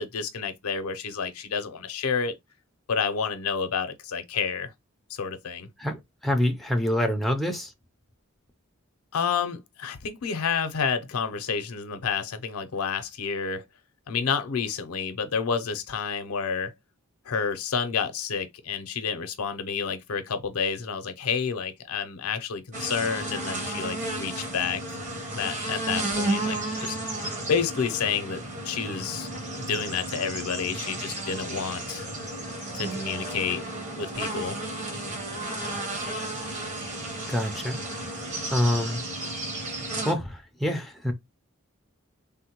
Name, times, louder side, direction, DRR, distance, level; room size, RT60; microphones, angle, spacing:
voice 1, 0.0-2.4 2.9-4.7 5.1-5.7 9.1-13.6 14.1-16.7 17.3-24.8 25.3-29.3 29.6-32.1 32.7-33.6 33.9-34.6, left 6 dB, 80° left, 0.6 m, -29 dB
voice 2, 5.8-7.7 37.3-37.8 38.5-39.0 40.0-41.1, left 1 dB, ahead, 0.4 m, -26 dB
sound 1, 22.7-40.1, right 2 dB, 35° right, 0.9 m, -33 dB
3.4 x 2.1 x 2.9 m
head